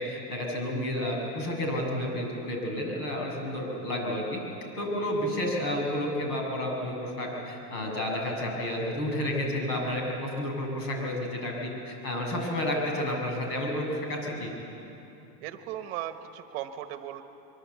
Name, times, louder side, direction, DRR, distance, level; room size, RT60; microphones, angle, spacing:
voice 1, 0.0-4.4 4.8-14.5, left 1 dB, 75° left, 1 dB, 7.3 m, -31 dB
voice 2, 15.4-17.2, right 12 dB, 40° right, 9 dB, 1.1 m, -37 dB
24.0 x 23.0 x 8.3 m, 2.9 s
supercardioid pair, 175°, 48 cm